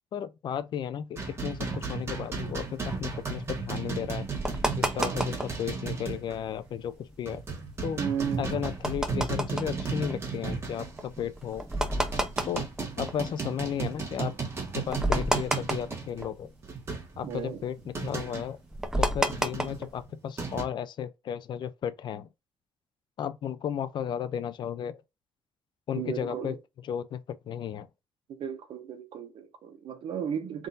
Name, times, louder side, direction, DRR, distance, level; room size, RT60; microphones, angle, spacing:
voice 1, 0.1-4.3 4.8-7.4 7.8-8.0 8.4-11.7 12.4-12.7 13.0-14.4 14.7-16.5 17.2-18.6 19.0-22.3 23.2-25.0 25.9-26.6 26.8-27.9, left 9 dB, 60° left, 0.5 m, -34 dB
sound 1, 1.2-6.4 6.7-6.8 7.2-11.2 11.7-18.5 19.3-20.6, right 4 dB, 30° right, 1.4 m, -35 dB
sound 2, 2.4-5.7 6.1-6.7 7.1-13.8 14.2-14.3 14.6-16.7 17.0-20.0, right 1 dB, 5° right, 0.5 m, -31 dB
voice 2, 8.0-8.6 17.2-17.6 25.9-26.6 28.3-30.7, right 8 dB, 75° right, 1.0 m, -34 dB
3.7 x 2.6 x 4.0 m
cardioid pair, 145°, 9 cm